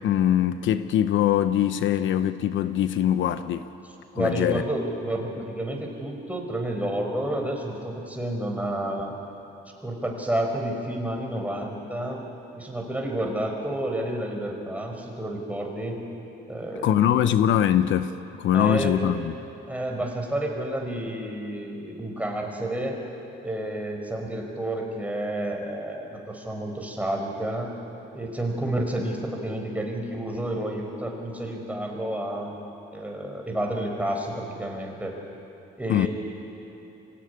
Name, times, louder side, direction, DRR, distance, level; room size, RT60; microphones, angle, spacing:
voice 1, 0.0-3.7 4.1-4.6 16.8-18.1 18.4-19.4 35.9-36.1, left 10 dB, 75° left, 0.8 m, -22 dB
voice 2, 4.1-9.1 9.8-12.2 12.5-16.0 16.5-17.4 18.5-19.1 19.7-23.0 23.4-27.7 28.1-32.5 32.9-35.2 35.8-36.1, right 1 dB, 5° right, 5.1 m, -30 dB
25.0 x 17.0 x 9.8 m
cardioid pair, 90°, 20 cm